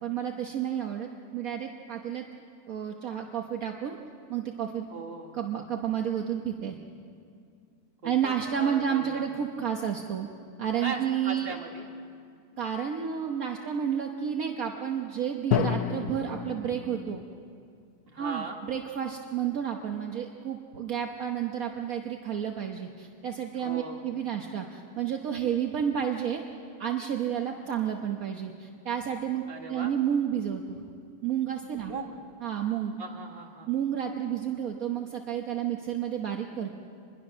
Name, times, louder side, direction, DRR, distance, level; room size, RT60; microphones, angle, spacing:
voice 1, 0.0-2.2 2.7-4.0 4.3-4.9 5.3-6.8 8.0-10.3 10.6-11.5 12.6-17.2 18.2-26.4 26.8-29.4 29.7-30.8 31.2-31.9 32.4-33.0 33.7-36.7, right 9 dB, 65° right, 2 dB, 1.5 m, -31 dB
voice 2, 4.9-5.4 8.0-9.3 10.8-11.9 18.1-18.6 23.5-24.0 29.5-29.9 31.8-32.2 33.0-33.7, right 3 dB, 35° right, 1 dB, 2.1 m, -38 dB
Drum, 15.5-17.4, left 9 dB, 75° left, 1.3 m, -30 dB
24.5 x 21.5 x 6.2 m, 2.3 s
omnidirectional pair, 1.7 m